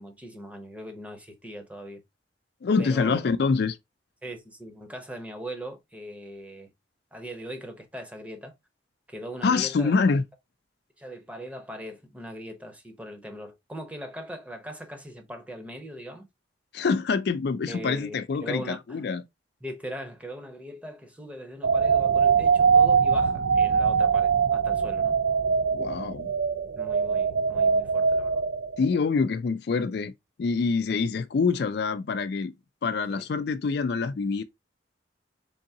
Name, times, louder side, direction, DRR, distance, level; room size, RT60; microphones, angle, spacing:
voice 1, 0.0-2.0 2.8-3.2 4.2-6.7 7.1-8.5 9.1-9.9 11.0-16.2 17.7-19.0 19.6-25.2 26.8-28.4 33.1-33.3, equal, 5° right, 0.7 m, -40 dB
voice 2, 2.6-3.8 9.4-10.2 16.7-19.2 25.7-26.3 28.8-30.1 30.4-32.5 32.8-34.4, left 4 dB, 60° left, 0.4 m, -25 dB
sound 1, 21.6-28.9, right 6 dB, 75° right, 0.4 m, -22 dB
3.8 x 3.6 x 2.7 m
head